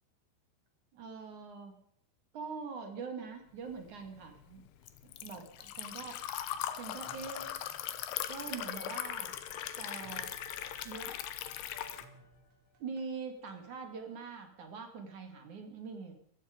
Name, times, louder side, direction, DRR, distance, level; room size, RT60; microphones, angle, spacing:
voice 1, 0.9-1.8 2.3-4.6 5.0-6.2 6.8-7.5 8.1-9.4 9.8-10.3 10.8-11.1 12.8-16.1, right 5 dB, 45° right, 5 dB, 3.1 m, -43 dB
Liquid, 3.8-12.0, left 11 dB, 70° left, 2.8 m, -40 dB
sound 1, 5.6-13.7, right 3 dB, 85° right, 5.2 m, -64 dB
sound 2, 8.7-12.8, left 4 dB, 35° left, 3.3 m, -55 dB
17.0 x 14.5 x 5.2 m, 0.69 s
omnidirectional pair, 5.6 m